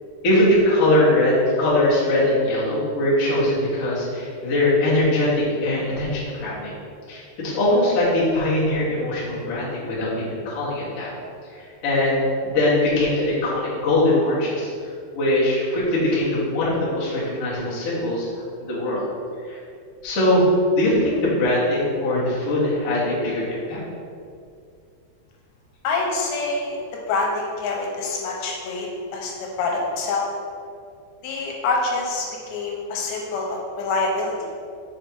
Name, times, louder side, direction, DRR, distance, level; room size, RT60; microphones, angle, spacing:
voice 1, 0.2-6.7 7.1-11.1 11.5-12.2 12.4-14.7 15.1-18.3 18.6-19.1 19.5-19.6 20.0-20.4 20.7-23.8, left 1 dB, 55° left, -8 dB, 1.7 m, -21 dB
voice 2, 25.8-29.3 29.6-30.3 31.2-34.3, left 3 dB, 80° left, -1 dB, 3.1 m, -26 dB
6.4 x 4.3 x 4.7 m, 2.4 s
omnidirectional pair, 5.1 m